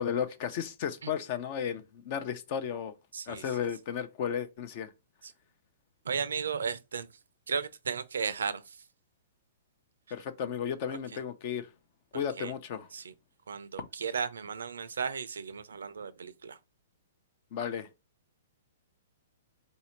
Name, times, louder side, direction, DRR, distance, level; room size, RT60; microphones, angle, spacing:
voice 1, 0.0-2.9 3.3-4.9 10.1-11.7 12.1-12.9 17.5-17.9, left 8 dB, 45° left, 0.7 m, -34 dB
voice 2, 3.1-3.4 6.1-7.1 7.5-8.6 12.4-12.5 12.9-13.1 13.5-16.6, right 6 dB, 85° right, 0.6 m, -34 dB
4.1 x 2.7 x 4.4 m
hypercardioid pair, 140°, 0 cm